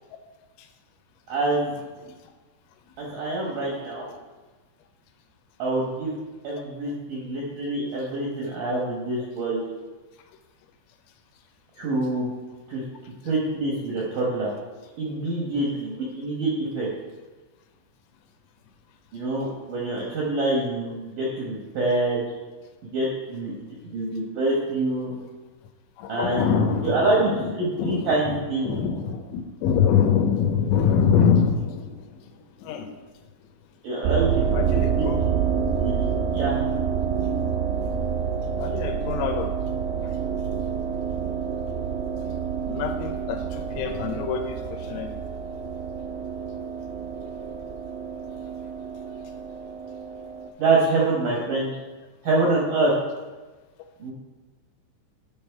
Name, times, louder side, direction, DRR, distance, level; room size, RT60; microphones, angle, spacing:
voice 1, 1.3-1.7 3.0-4.1 5.6-6.2 6.4-9.6 11.8-12.3 12.7-12.8 13.2-14.5 15.0-16.9 19.1-22.2 22.9-23.5 23.9-25.1 26.1-26.4 26.8-28.7 33.8-34.4 34.9-35.1 35.8-36.1 36.3-36.6 50.6-51.8 52.2-52.9 54.0-54.1, right 2 dB, 70° right, -4 dB, 2.0 m, -25 dB
voice 2, 26.0-28.3 28.6-32.9 34.5-35.2 37.9-38.1 38.6-39.5 40.0-40.2 42.7-45.2 49.2-49.3, left 7 dB, 85° left, 6 dB, 3.2 m, -25 dB
sound 1, 34.0-50.5, right 7 dB, 85° right, 3.0 m, -28 dB
9.5 x 5.6 x 4.6 m, 1.2 s
omnidirectional pair, 5.4 m